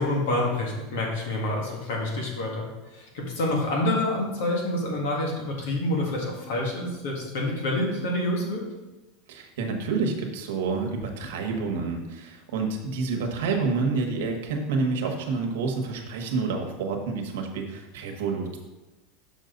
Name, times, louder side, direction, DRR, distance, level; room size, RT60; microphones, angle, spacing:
voice 1, 0.0-2.7 2.9-8.6, left 1 dB, 65° left, -1 dB, 2.0 m, -27 dB
voice 2, 9.3-18.6, right 4 dB, 80° right, 3 dB, 1.3 m, -28 dB
6.5 x 6.1 x 4.0 m, 1.1 s
supercardioid pair, 180°, 0 cm